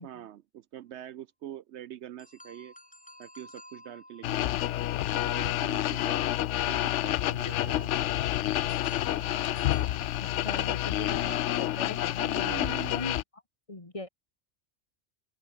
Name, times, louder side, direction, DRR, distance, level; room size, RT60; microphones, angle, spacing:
voice 1, 0.0-2.7 3.2-4.6 5.1-6.3 6.6-8.1 12.3-13.0, right 12 dB, 70° right, 0.8 m, -44 dB
sound 1, 2.2-6.3 8.7-11.0, left 1 dB, 5° left, 1.6 m, -54 dB
sound 2, 4.2-13.2, left 13 dB, 75° left, 0.9 m, -29 dB
Acoustic guitar / Strum, 5.4-8.9, equal, 10° right, 6.8 m, -64 dB
voice 2, 10.2-12.6 12.9-13.2 13.7-14.1, left 2 dB, 25° left, 2.0 m, -40 dB
open air
omnidirectional pair, 1.3 m